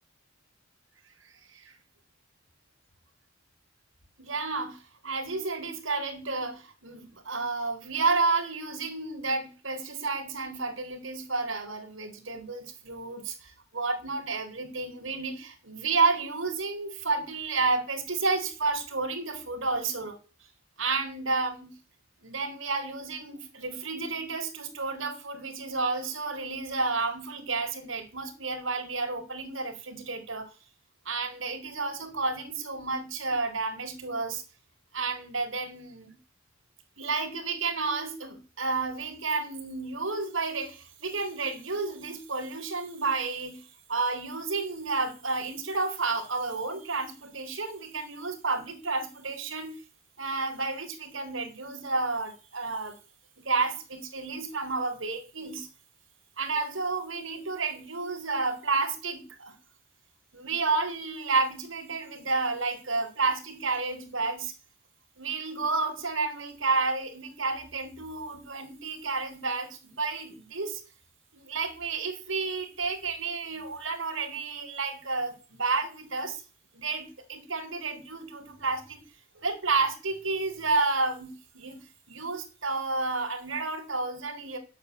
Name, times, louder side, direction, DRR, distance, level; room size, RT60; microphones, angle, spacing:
voice 1, 4.2-20.2 20.8-21.8 22.2-30.5 31.0-34.4 34.9-36.2 37.0-43.6 43.9-49.8 50.2-52.9 53.4-55.7 56.4-59.6 60.3-64.5 65.2-70.8 71.3-76.4 76.7-79.0 79.4-84.6, right 3 dB, 85° right, 4 dB, 4.4 m, -31 dB
11.5 x 8.7 x 9.6 m, 0.36 s
head